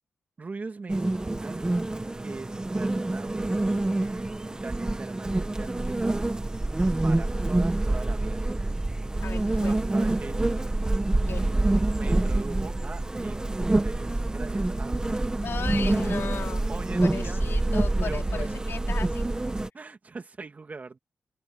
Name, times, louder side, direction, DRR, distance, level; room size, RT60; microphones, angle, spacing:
voice 1, 0.4-2.0 2.2-6.4 6.7-8.7 9.7-10.5 11.9-15.4 16.7-17.4 17.9-18.5 19.7-21.0, right 4 dB, 40° right, 2.2 m, -42 dB
sound 1, 0.9-19.7, right 2 dB, 20° right, 1.7 m, -26 dB
voice 2, 9.2-9.8 11.3-11.5 15.4-16.6 17.0-19.3, left 6 dB, 70° left, 4.5 m, -36 dB
wide cardioid pair, 105°, 4 cm